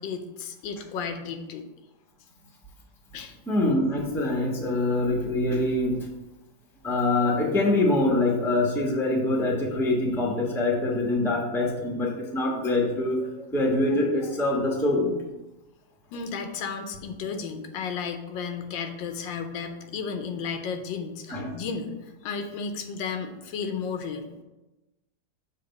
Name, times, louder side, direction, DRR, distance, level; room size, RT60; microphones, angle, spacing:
voice 1, 0.0-1.7 3.1-3.3 16.1-21.9 22.2-24.3, left 5 dB, 80° left, 6 dB, 1.4 m, -33 dB
voice 2, 3.5-6.0 6.8-15.1 21.3-21.5, left 2 dB, ahead, -2 dB, 0.8 m, -24 dB
6.8 x 3.2 x 5.2 m, 1.0 s
omnidirectional pair, 2.0 m